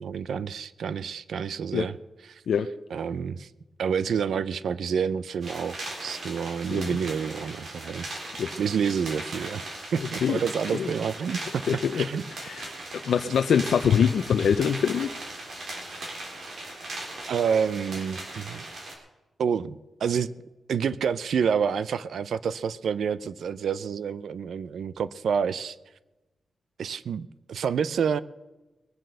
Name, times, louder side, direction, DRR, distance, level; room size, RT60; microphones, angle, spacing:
voice 1, 0.0-1.9 2.3-2.4 2.9-3.5 3.8-8.1 8.6-9.7 9.9-11.6 11.9-12.2 17.3-18.6 19.4-20.3 20.7-25.8 26.8-28.2, right 7 dB, 75° right, 17 dB, 0.5 m, -28 dB
sound 1, 5.4-18.9, right 2 dB, 55° right, 3.8 m, -38 dB
voice 2, 10.0-10.4 10.7-10.9 11.7-12.1 12.4-15.1, left 7 dB, 75° left, 9 dB, 0.5 m, -24 dB
21.5 x 7.6 x 6.7 m, 1.1 s
wide cardioid pair, 170°, 0 cm